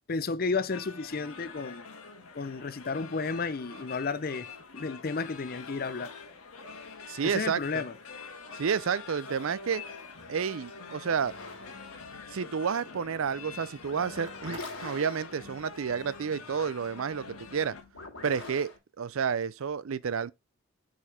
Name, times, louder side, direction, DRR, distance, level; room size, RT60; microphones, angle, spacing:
voice 1, 0.1-1.9 2.3-4.5 4.7-6.1 7.2-7.9, left 4 dB, 40° left, 0.5 m, -32 dB
sound 1, 0.7-17.8, left 4 dB, 85° left, 1.7 m, -45 dB
voice 2, 7.1-7.8 8.5-9.8 10.3-11.3 12.3-17.8 18.2-18.7 19.0-20.3, right 6 dB, 70° right, 0.5 m, -30 dB
sound 2, 11.2-18.8, left 3 dB, 70° left, 3.2 m, -47 dB
6.5 x 5.6 x 3.4 m
head